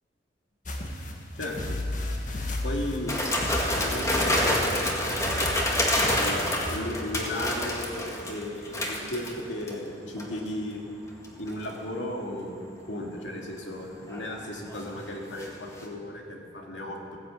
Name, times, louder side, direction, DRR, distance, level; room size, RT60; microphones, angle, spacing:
sound 1, 0.7-6.8, left 1 dB, 45° left, 1.7 m, -34 dB
voice 1, 1.4-1.8 2.6-3.2 3.7-5.6 6.1-10.8 11.3-17.2, left 1 dB, 75° left, 0 dB, 2.5 m, -35 dB
sound 2, 3.1-9.8 10.2-10.5 11.2-11.7 13.9-15.5 15.8-15.9, left 1 dB, 15° left, 2.0 m, -28 dB
16.0 x 10.0 x 8.3 m, 2.2 s
head